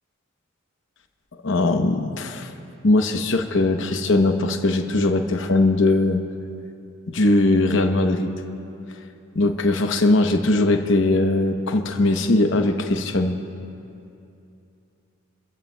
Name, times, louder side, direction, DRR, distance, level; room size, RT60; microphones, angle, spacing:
voice 1, 1.4-2.5 2.8-6.2 7.1-8.3 9.3-13.4, left 2 dB, 60° left, 5 dB, 0.9 m, -20 dB
29.5 x 15.0 x 2.3 m, 2.7 s
head